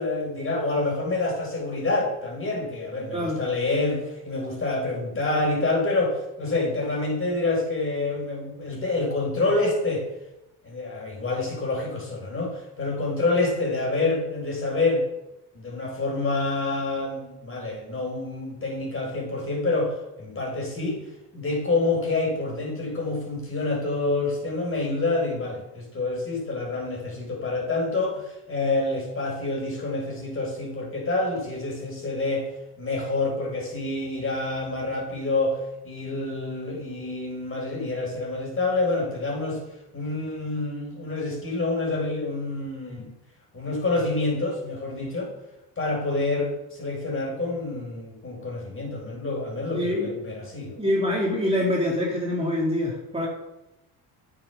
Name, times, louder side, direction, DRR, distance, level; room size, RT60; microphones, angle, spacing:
voice 1, 0.0-10.0 10.6-15.1 15.5-21.1 21.3-32.5 32.8-35.6 35.8-39.6 39.9-43.1 43.5-45.3 45.8-50.8, left 2 dB, 30° left, -1 dB, 3.9 m, -27 dB
voice 2, 49.7-50.1 50.8-53.3, left 1 dB, 15° right, -3 dB, 2.3 m, -25 dB
8.7 x 6.5 x 5.3 m, 0.91 s
supercardioid pair, 85°, 44 cm